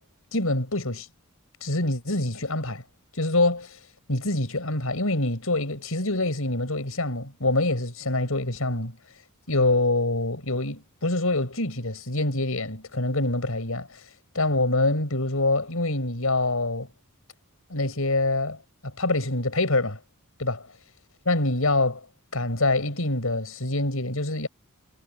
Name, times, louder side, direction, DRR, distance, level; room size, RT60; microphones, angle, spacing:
voice 1, 0.3-1.1 1.6-2.8 3.2-3.8 4.1-9.0 9.5-14.0 14.3-16.9 17.7-18.6 18.8-20.0 20.4-20.6 21.2-22.0 22.3-24.5, left 2 dB, 75° left, 6.4 m, -25 dB
head